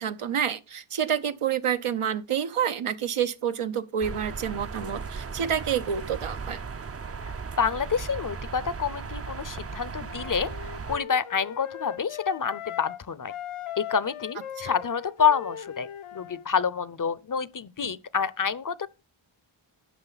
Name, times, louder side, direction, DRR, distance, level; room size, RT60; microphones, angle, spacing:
voice 1, 0.0-6.6 14.6-14.7, right 8 dB, 85° right, 0.9 m, -28 dB
sound 1, 4.0-11.0, right 5 dB, 30° right, 0.5 m, -37 dB
voice 2, 7.2-10.5 10.9-13.3 13.8-18.9, left 6 dB, 40° left, 0.6 m, -28 dB
Wind instrument woodwind instrument, 10.0-13.0 13.3-16.4, left 10 dB, 80° left, 0.7 m, -39 dB
12.0 x 7.3 x 4.0 m
wide cardioid pair, 70°, 50 cm